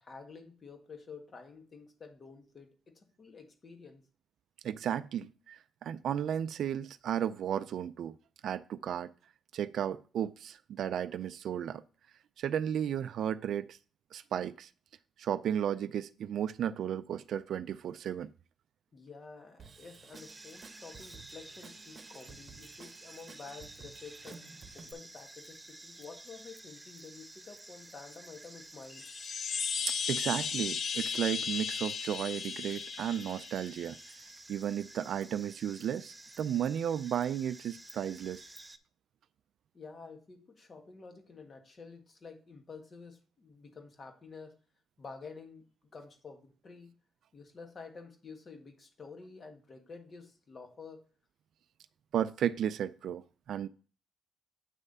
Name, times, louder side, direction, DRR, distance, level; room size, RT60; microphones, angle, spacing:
voice 1, 0.0-4.0 18.9-24.4 24.7-29.1 39.7-44.5 45.0-45.7 45.9-46.9 47.3-51.0, left 4 dB, 40° left, 4 dB, 1.6 m, -50 dB
voice 2, 4.6-8.2 8.4-9.1 9.5-11.8 12.4-13.8 14.1-14.7 15.2-18.3 29.9-34.0 34.5-38.4 52.1-53.7, right 9 dB, 70° right, 12 dB, 0.3 m, -34 dB
Drum kit / Drum, 19.6-24.9, right 5 dB, 45° right, 0.9 m, -53 dB
sound 1, 20.1-38.8, right 2 dB, 15° right, 0.6 m, -52 dB
sound 2, 28.9-34.0, left 6 dB, 55° left, 0.3 m, -36 dB
8.2 x 3.3 x 5.4 m, 0.38 s
cardioid pair, 90°, 0 cm